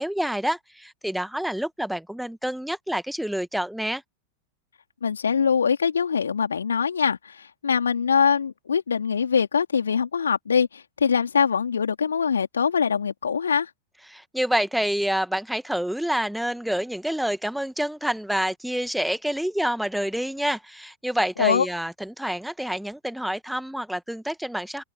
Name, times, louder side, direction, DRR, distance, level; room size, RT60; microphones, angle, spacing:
voice 1, 0.0-4.0 14.1-24.8, equal, ahead, 1.5 m, -28 dB
voice 2, 5.0-13.7 21.4-21.7, left 6 dB, 70° left, 3.6 m, -23 dB
open air
figure-of-eight pair, 90°, 0 cm